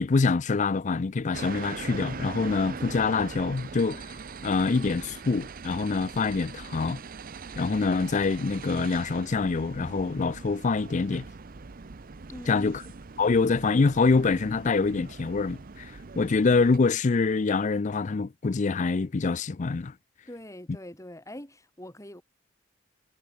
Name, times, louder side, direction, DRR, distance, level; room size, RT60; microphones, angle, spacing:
voice 1, 0.0-4.0 4.4-7.0 7.6-11.3 12.5-12.8 13.2-15.9 16.2-19.9, left 4 dB, 40° left, 0.5 m, -25 dB
sound 1, 1.3-16.8, right 4 dB, 50° right, 0.7 m, -42 dB
voice 2, 12.3-12.7 20.3-22.2, left 1 dB, 15° left, 6.3 m, -42 dB
head